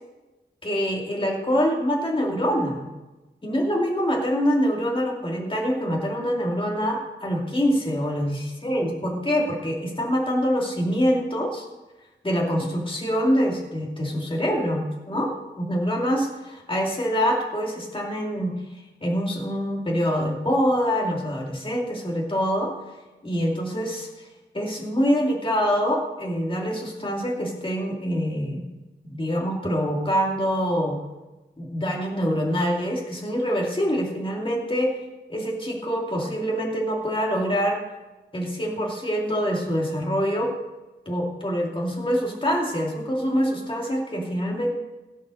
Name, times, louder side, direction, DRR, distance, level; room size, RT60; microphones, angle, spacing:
voice 1, 0.6-2.9 3.4-11.6 12.2-18.5 19.0-22.7 23.2-24.3 24.5-28.7 29.0-31.0 31.6-35.0 35.3-37.8 38.3-40.5 41.1-44.7, equal, 25° left, -2 dB, 2.5 m, -25 dB
16.5 x 5.7 x 6.4 m, 1.1 s
wide cardioid pair, 75°, 20 cm